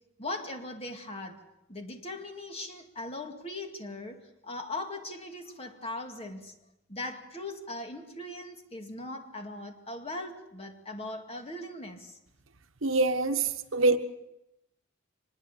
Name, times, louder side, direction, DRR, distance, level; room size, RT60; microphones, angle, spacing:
voice 1, 0.2-1.4 1.7-6.5 6.9-12.2, left 2 dB, 30° left, 4 dB, 2.2 m, -39 dB
voice 2, 12.8-14.0, right 3 dB, 70° right, 8 dB, 1.3 m, -25 dB
24.5 x 21.0 x 6.9 m, 0.88 s
head